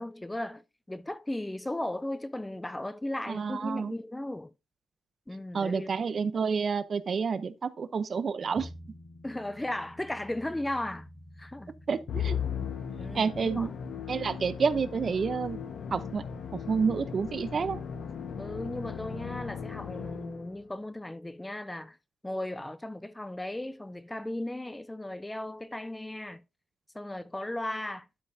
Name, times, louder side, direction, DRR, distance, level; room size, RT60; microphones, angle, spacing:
voice 1, 0.0-4.5 5.3-5.9 9.2-11.1 11.4-11.7 13.0-13.7 18.4-22.0 22.2-26.4 26.9-28.1, left 1 dB, 10° left, 0.5 m, -36 dB
voice 2, 3.3-3.9 5.5-8.7 11.9-12.4 13.1-13.7 14.1-15.6 15.9-16.2 16.7-17.8, right 5 dB, 45° right, 0.8 m, -29 dB
sound 1, 8.6-17.7 18.0-18.1, left 1 dB, 40° left, 2.7 m, -52 dB
Musical instrument, 12.1-20.6, left 7 dB, 70° left, 1.4 m, -37 dB
12.0 x 5.5 x 2.8 m
cardioid pair, 110°, 0 cm